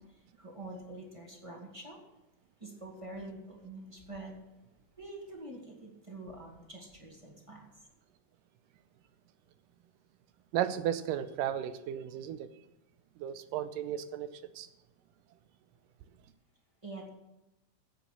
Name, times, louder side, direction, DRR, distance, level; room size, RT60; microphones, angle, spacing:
voice 1, 0.0-2.0 2.6-4.4 5.0-7.7 16.8-17.1, right 2 dB, 15° right, 0 dB, 1.5 m, -46 dB
voice 2, 10.5-12.5 13.2-14.3 14.6-14.7, right 10 dB, 85° right, 12 dB, 2.3 m, -34 dB
10.5 x 8.4 x 7.5 m, 0.93 s
omnidirectional pair, 3.7 m